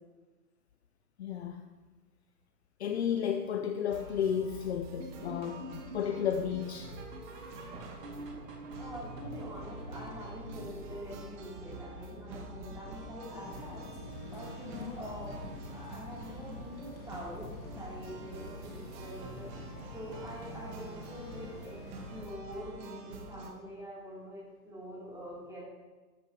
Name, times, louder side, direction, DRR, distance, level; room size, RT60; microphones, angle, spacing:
voice 1, 1.2-1.6 2.8-6.9 14.8-14.9, left 8 dB, 45° left, 6 dB, 0.7 m, -33 dB
sound 1, 3.9-23.5, right 2 dB, 30° right, 1.5 m, -47 dB
sound 2, 5.0-14.1 14.4-14.7 15.0-15.1 15.6-15.7 16.2-16.3, right 1 dB, 75° right, 3.0 m, -48 dB
voice 2, 8.8-21.8 22.1-25.6, equal, 5° right, -7 dB, 3.5 m, -45 dB
sound 3, 13.3-22.2, left 3 dB, 20° left, 1.5 m, -48 dB
13.0 x 8.7 x 3.2 m, 1.3 s
hypercardioid pair, 140°, 47 cm